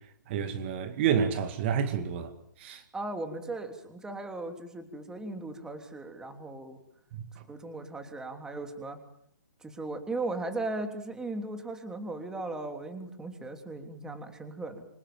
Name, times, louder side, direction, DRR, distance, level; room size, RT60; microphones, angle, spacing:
voice 1, 0.3-2.3 2.6-2.8 7.1-7.3, right 7 dB, 35° right, 2.2 m, -29 dB
voice 2, 2.9-6.8 7.5-9.0 9.6-14.9, right 2 dB, 5° right, 3.2 m, -37 dB
26.5 x 26.0 x 7.4 m
hypercardioid pair, 145°, 10 cm